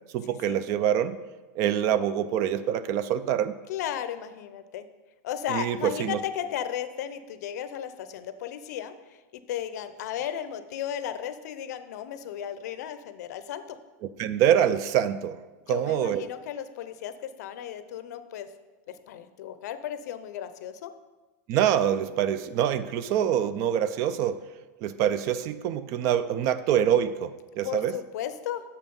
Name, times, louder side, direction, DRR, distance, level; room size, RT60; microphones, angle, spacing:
voice 1, 0.1-1.2 1.6-3.5 5.5-6.2 14.2-15.4 15.7-16.2 21.5-24.4 24.8-28.0, right 10 dB, 35° right, 14 dB, 0.3 m, -25 dB
voice 2, 3.7-4.8 5.2-8.9 9.5-13.8 15.7-17.1 17.4-18.5 18.9-20.9 27.6-28.6, left 10 dB, 70° left, 11 dB, 0.6 m, -35 dB
7.2 x 5.7 x 5.3 m, 1.2 s
supercardioid pair, 160°, 9 cm